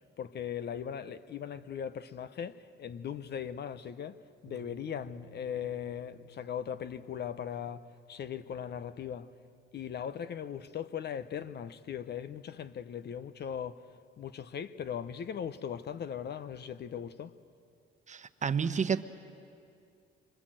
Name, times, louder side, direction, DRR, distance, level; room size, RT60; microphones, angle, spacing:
voice 1, 0.2-4.2 4.4-9.3 9.7-13.9 14.2-17.3, left 8 dB, 55° left, 0.9 m, -39 dB
sound 1, 4.4-11.5, right 4 dB, 70° right, 1.5 m, -60 dB
voice 2, 18.1-19.0, right 6 dB, 35° right, 1.0 m, -30 dB
26.0 x 25.0 x 7.7 m
cardioid pair, 90°, 20 cm